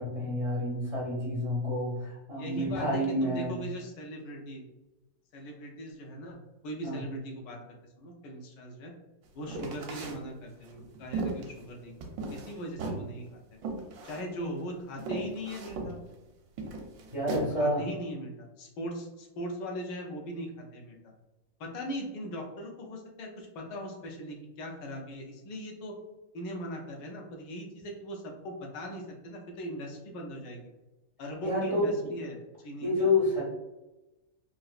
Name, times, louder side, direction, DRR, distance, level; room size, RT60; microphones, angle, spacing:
voice 1, 0.0-3.6 6.8-7.0 17.1-17.8 31.4-32.1 32.8-33.4, left 1 dB, 50° right, -5 dB, 0.4 m, -29 dB
voice 2, 2.4-4.6 5.3-6.4 6.6-7.6 8.0-8.9 9.3-11.9 12.3-13.6 14.0-16.0 17.6-21.0 21.6-25.9 26.3-30.6 31.2-32.4 32.6-33.1, equal, 75° left, 0 dB, 1.3 m, -39 dB
sound 1, 9.5-10.2 10.6-12.5 12.8-13.0 13.6-14.3 14.6-14.7 15.0-15.9 16.6-17.5, right 3 dB, 85° right, 1.3 m, -36 dB
4.0 x 2.4 x 2.3 m, 1.0 s
omnidirectional pair, 2.0 m